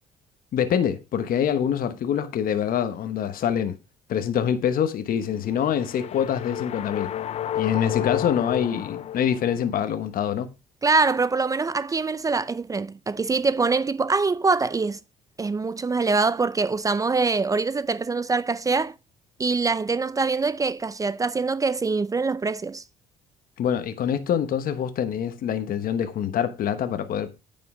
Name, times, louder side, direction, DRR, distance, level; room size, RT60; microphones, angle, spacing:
voice 1, 0.5-3.8 4.1-7.1 7.5-10.5 23.6-27.3, left 9 dB, 60° left, 1.1 m, -25 dB
sound 1, 5.4-9.8, left 11 dB, 40° left, 0.4 m, -31 dB
voice 2, 10.8-15.0 15.4-18.9 19.4-22.8, right 4 dB, 20° right, 0.4 m, -24 dB
9.6 x 5.5 x 4.9 m
cardioid pair, 110°, 17 cm